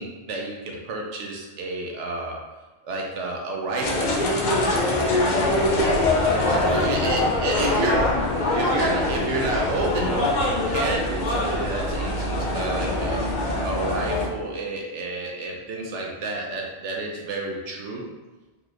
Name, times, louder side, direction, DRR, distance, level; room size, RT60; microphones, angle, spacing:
voice 1, 0.0-2.4 2.8-4.1 6.7-8.1 8.5-13.2 13.6-18.0, right 2 dB, 75° right, 0 dB, 1.0 m, -30 dB
sound 1, 3.8-14.3, left 2 dB, 60° left, 0.5 m, -23 dB
voice 2, 5.3-7.5, left 1 dB, 35° left, -7 dB, 0.9 m, -33 dB
3.9 x 2.8 x 2.4 m, 1.1 s
omnidirectional pair, 1.2 m